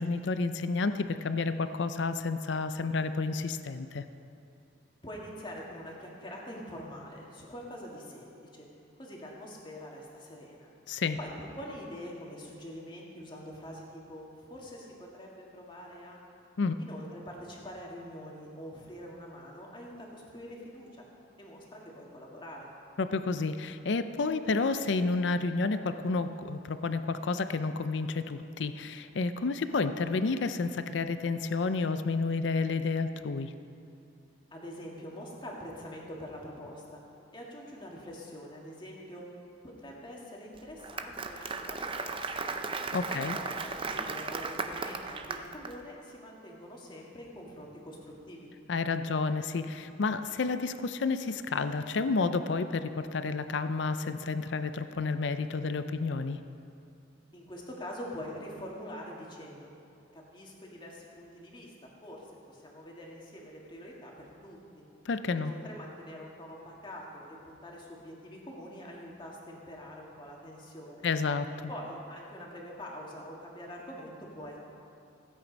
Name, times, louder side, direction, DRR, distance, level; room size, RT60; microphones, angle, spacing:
voice 1, 0.0-4.0 10.9-11.2 16.6-16.8 23.0-33.5 42.9-43.4 48.7-56.4 65.1-65.5 71.0-71.7, left 4 dB, 65° left, 11 dB, 0.5 m, -30 dB
voice 2, 5.0-8.7 9.0-10.7 11.2-16.2 16.8-21.0 21.4-22.7 34.5-37.0 37.3-39.2 39.8-42.5 43.0-48.5 57.3-59.7 60.1-64.8 65.4-71.1 71.7-74.6, equal, 25° left, -2 dB, 2.0 m, -45 dB
Applause, 40.6-45.7, right 4 dB, 25° right, 0.5 m, -36 dB
16.0 x 8.8 x 5.2 m, 2.6 s
head